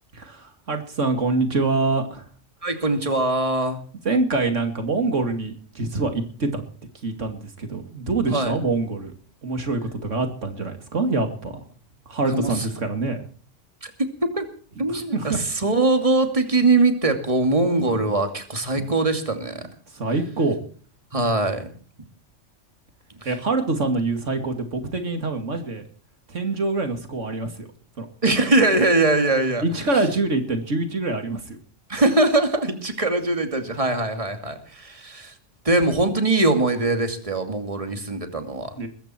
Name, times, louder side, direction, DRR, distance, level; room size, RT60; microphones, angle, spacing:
voice 1, 0.1-2.3 4.0-6.6 7.0-9.1 9.4-11.6 12.1-13.3 14.9-15.4 19.9-20.6 23.3-25.8 26.3-27.7 28.0-28.1 29.6-31.6 38.8-38.9, right 3 dB, 85° right, 6 dB, 2.7 m, -25 dB
voice 2, 2.6-3.8 8.3-8.5 12.3-12.7 13.8-14.4 14.8-19.7 21.1-21.7 23.1-23.3 28.2-29.9 31.9-35.3 35.6-38.8, right 2 dB, 30° right, 6 dB, 2.6 m, -22 dB
21.5 x 14.5 x 4.5 m, 0.42 s
omnidirectional pair, 1.2 m